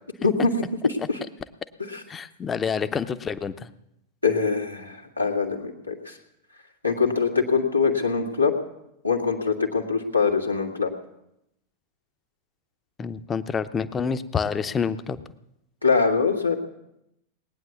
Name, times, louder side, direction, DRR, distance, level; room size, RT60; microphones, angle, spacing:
voice 1, 0.8-1.2 1.8-2.0 4.2-6.2 6.8-8.5 9.0-10.9 15.8-16.5, left 5 dB, 90° left, -1 dB, 2.0 m, -23 dB
voice 2, 2.1-3.7 13.0-15.2, left 6 dB, 20° left, 12 dB, 0.8 m, -28 dB
20.0 x 9.6 x 7.0 m, 0.84 s
figure-of-eight pair, 90°, 0 cm